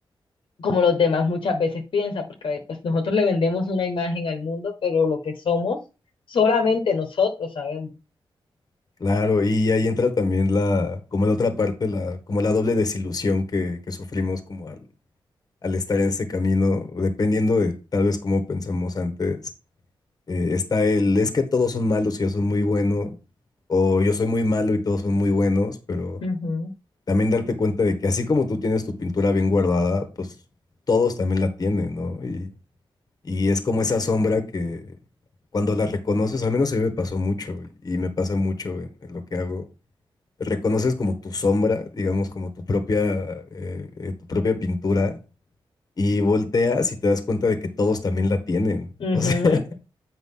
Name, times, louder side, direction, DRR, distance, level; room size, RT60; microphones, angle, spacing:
voice 1, 0.6-5.8 6.3-7.9 26.2-26.7 49.0-49.6, left 4 dB, 75° left, 1.3 m, -23 dB
voice 2, 9.0-14.8 15.6-19.4 20.3-23.2 23.7-26.2 27.1-30.3 30.9-32.5 33.3-34.8 35.5-39.6 40.4-45.2 46.0-48.9 49.1-49.6, left 3 dB, 45° left, 1.4 m, -23 dB
8.2 x 5.1 x 3.8 m
wide cardioid pair, 110°, 9 cm